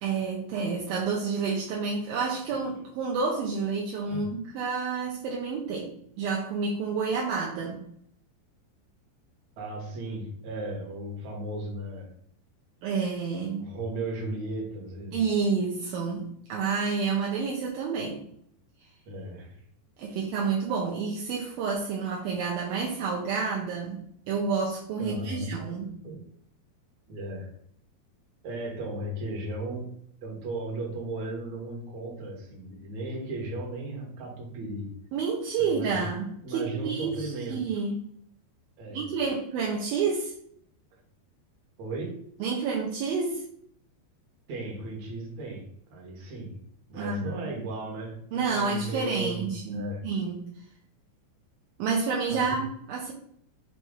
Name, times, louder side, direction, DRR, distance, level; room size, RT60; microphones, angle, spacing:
voice 1, 0.0-7.8 12.8-13.7 15.1-18.2 20.0-25.9 35.1-38.0 38.9-40.3 42.4-43.4 46.9-47.5 48.3-50.5 51.8-53.1, right 5 dB, 80° right, -2 dB, 2.2 m, -29 dB
voice 2, 9.6-12.1 13.6-15.2 19.1-19.6 20.1-20.2 25.0-26.2 27.1-27.5 28.4-34.9 35.6-36.1 36.4-37.8 38.8-39.2 41.8-42.2 44.5-46.6 46.9-50.0 52.3-52.6, right 2 dB, 55° right, -1 dB, 2.1 m, -36 dB
6.6 x 3.2 x 4.7 m, 0.68 s
omnidirectional pair, 5.2 m